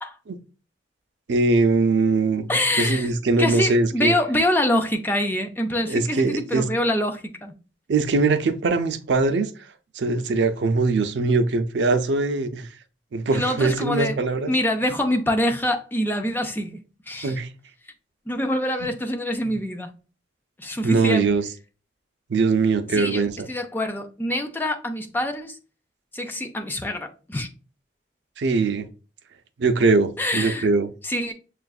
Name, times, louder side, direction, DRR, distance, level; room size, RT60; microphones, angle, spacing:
voice 1, 1.3-4.1 5.9-6.7 7.9-9.5 10.0-12.7 13.1-14.5 17.2-17.5 19.4-19.6 20.8-21.4 22.3-23.5 28.4-28.9 29.6-30.9, right 3 dB, 75° right, 0.5 m, -21 dB
voice 2, 2.5-7.6 13.3-14.2 14.5-16.8 17.1-17.4 18.3-19.9 20.6-21.3 22.9-23.2 23.5-25.6 26.1-27.5 30.2-30.7 31.0-31.3, left 1 dB, 10° left, 0.4 m, -25 dB
6.6 x 2.4 x 2.3 m
head